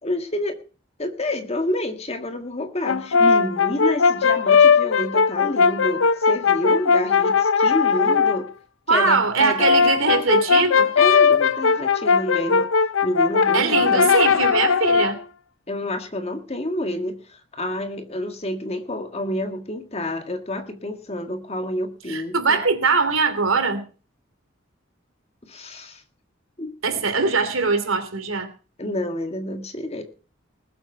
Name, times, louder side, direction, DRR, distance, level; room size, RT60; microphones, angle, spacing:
voice 1, 0.0-0.6 1.0-8.5 8.9-9.6 11.0-12.7 13.0-14.1 15.7-22.6 25.5-26.0 26.6-26.7 28.8-30.0, left 1 dB, 30° left, 6 dB, 1.7 m, -28 dB
Brass instrument, 2.8-8.4 9.4-15.2, left 5 dB, 80° left, 0.6 m, -19 dB
voice 2, 8.9-10.9 13.5-15.2 22.1-23.8 26.8-28.5, right 4 dB, 90° right, 9 dB, 2.8 m, -21 dB
19.5 x 7.9 x 5.7 m, 0.38 s
head